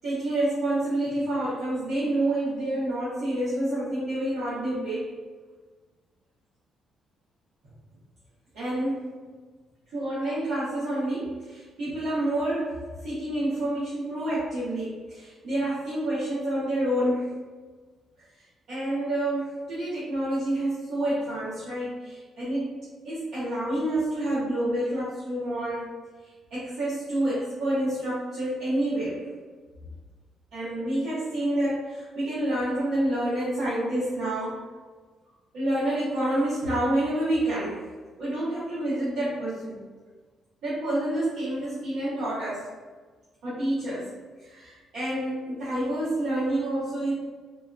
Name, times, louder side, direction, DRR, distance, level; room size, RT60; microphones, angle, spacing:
voice 1, 0.0-5.1 8.5-9.1 9.9-17.3 18.7-22.7 23.0-25.9 26.5-29.3 30.5-34.6 35.5-37.8 38.2-39.8 40.6-42.7 43.4-44.1 44.4-47.1, right 1 dB, 80° right, -11 dB, 0.9 m, -28 dB
3.4 x 2.5 x 2.3 m, 1.4 s
cardioid pair, 90°, 0 cm